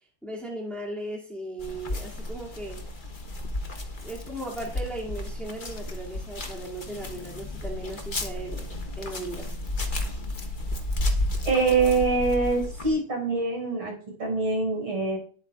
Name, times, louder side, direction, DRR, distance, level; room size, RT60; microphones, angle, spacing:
voice 1, 0.2-2.8 4.0-8.7 9.0-9.6, right 1 dB, ahead, -5 dB, 2.5 m, -37 dB
sound 1, 1.6-12.9, left 2 dB, 30° left, 1.1 m, -32 dB
voice 2, 11.4-15.2, right 4 dB, 80° right, -1 dB, 6.5 m, -24 dB
19.5 x 8.0 x 2.5 m, 0.42 s
omnidirectional pair, 2.4 m